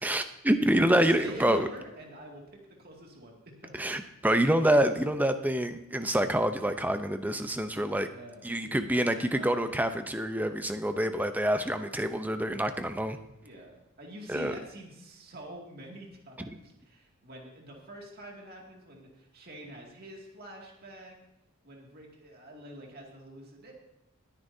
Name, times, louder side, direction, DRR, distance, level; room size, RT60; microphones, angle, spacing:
voice 1, 0.0-1.7 3.7-8.1 8.4-13.2 14.3-14.5, right 1 dB, 5° right, 9 dB, 0.6 m, -27 dB
voice 2, 0.7-3.9 8.0-9.1 9.3-9.6 13.4-21.2 21.6-23.7, right 1 dB, 45° right, 0 dB, 2.2 m, -46 dB
20.5 x 9.8 x 2.7 m, 0.90 s
head